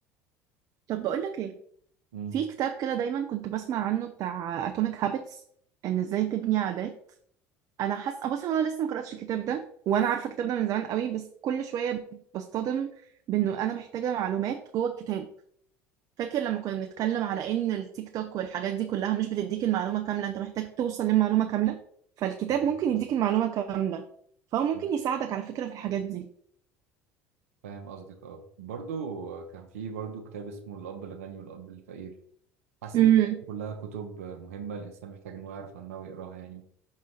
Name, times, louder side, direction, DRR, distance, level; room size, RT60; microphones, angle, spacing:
voice 1, 0.9-1.6 2.3-5.4 5.8-6.9 7.8-12.0 12.3-12.9 13.3-15.3 16.2-21.8 22.2-24.0 24.5-26.2 32.9-33.4, right 10 dB, 50° right, 6 dB, 0.6 m, -28 dB
voice 2, 22.5-23.0 24.7-24.9 27.6-32.2 32.8-33.1 33.5-36.6, right 6 dB, 85° right, 4 dB, 0.8 m, -39 dB
6.2 x 4.2 x 3.9 m, 0.64 s
hypercardioid pair, 75°, 7 cm